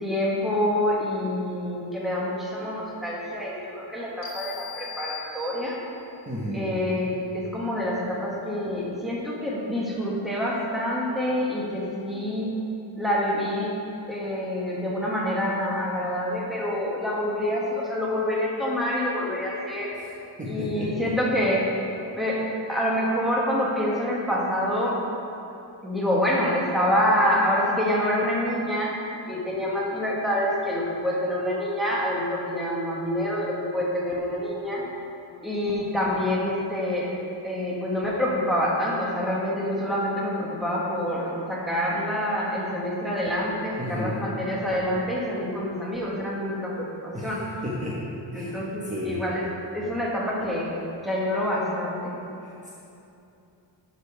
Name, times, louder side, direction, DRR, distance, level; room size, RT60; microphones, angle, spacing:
voice 1, 0.0-5.8 6.5-12.5 13.0-13.7 14.1-19.9 20.5-21.7 22.1-22.4 22.7-25.0 25.8-28.9 29.3-34.8 35.4-37.1 37.4-47.4 48.3-49.5 49.7-50.7 51.0-52.1, left 1 dB, ahead, -5 dB, 1.4 m, -26 dB
sound 1, 4.2-6.0, left 5 dB, 60° left, 1.8 m, -40 dB
voice 2, 6.3-6.6 19.9-20.1 20.4-21.1 43.8-44.1 47.1-47.4 47.6-48.0 48.3-48.6 48.8-49.2 52.4-52.7, left 1 dB, 15° right, -7 dB, 1.1 m, -33 dB
11.0 x 5.3 x 5.0 m, 2.8 s
wide cardioid pair, 160°, 44 cm